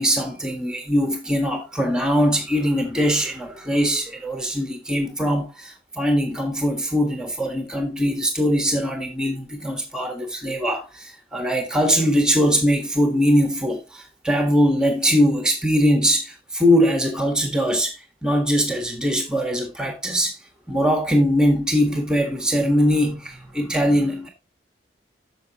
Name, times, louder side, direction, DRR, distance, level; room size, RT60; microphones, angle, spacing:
voice 1, 0.0-18.0 18.2-20.4 20.7-24.3, equal, 5° right, 1.6 m, -21 dB
9.1 x 6.8 x 3.0 m
head